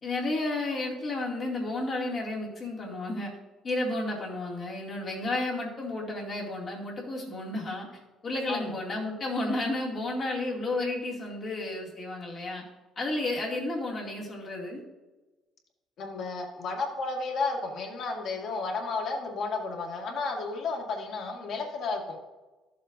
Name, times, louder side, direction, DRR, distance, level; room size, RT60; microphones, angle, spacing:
voice 1, 0.0-3.3 3.6-7.9 8.2-12.6 13.0-14.8, left 2 dB, 30° left, -2 dB, 2.4 m, -32 dB
voice 2, 16.0-22.2, left 3 dB, 50° left, 1 dB, 1.8 m, -32 dB
13.0 x 7.6 x 2.6 m, 1.1 s
cardioid pair, 155°, 0 cm